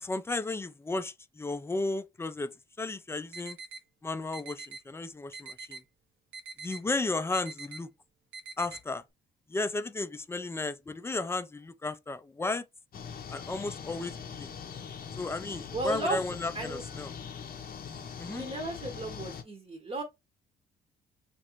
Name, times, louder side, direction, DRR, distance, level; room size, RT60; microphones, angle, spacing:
voice 1, 0.0-3.6 4.0-5.8 6.6-7.9 8.6-9.0 9.5-12.6 13.3-14.5 15.2-17.1 18.2-18.4, left 3 dB, 10° left, 0.4 m, -34 dB
sound 1, 3.3-3.8 4.3-4.8 5.3-5.8 6.3-6.8 7.3-7.8 8.3-8.8, right 4 dB, 75° right, 0.7 m, -43 dB
sound 2, 12.9-19.4, left 7 dB, 50° left, 0.6 m, -42 dB
voice 2, 15.7-16.2 16.5-16.8 18.3-20.0, right 2 dB, 30° right, 0.8 m, -34 dB
3.1 x 2.5 x 2.9 m
cardioid pair, 90°, 20 cm